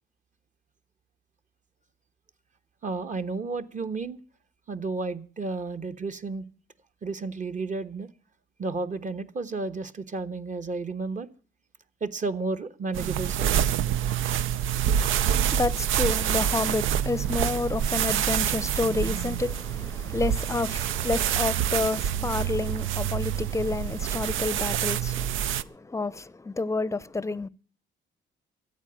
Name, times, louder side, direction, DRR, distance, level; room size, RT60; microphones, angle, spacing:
voice 1, 2.8-4.2 4.7-6.4 7.0-8.1 8.6-11.3 12.0-14.1, right 3 dB, 40° right, 1.2 m, -32 dB
sound 1, 12.9-25.6, right 10 dB, 80° right, 0.6 m, -27 dB
voice 2, 14.9-27.5, left 3 dB, 15° left, 0.6 m, -30 dB
14.0 x 8.8 x 9.0 m
cardioid pair, 90°, 20 cm